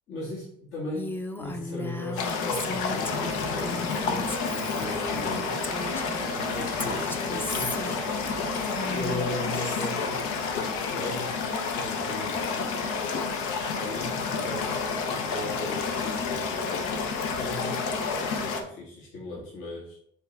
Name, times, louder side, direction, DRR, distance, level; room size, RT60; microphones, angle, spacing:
voice 1, 0.1-5.5 6.3-8.0 8.9-12.8 13.7-17.0 17.4-20.0, left 1 dB, 70° left, -5 dB, 1.8 m, -37 dB
Female speech woman speaking, 0.9-6.3 6.8-9.9, left 2 dB, 10° left, 0.5 m, -36 dB
sound 1, 2.2-18.6, left 5 dB, 85° left, 0.9 m, -30 dB
sound 2, 3.2-9.3, right 6 dB, 75° right, 0.8 m, -41 dB
7.1 x 4.0 x 3.4 m, 0.65 s
cardioid pair, 125°, 21 cm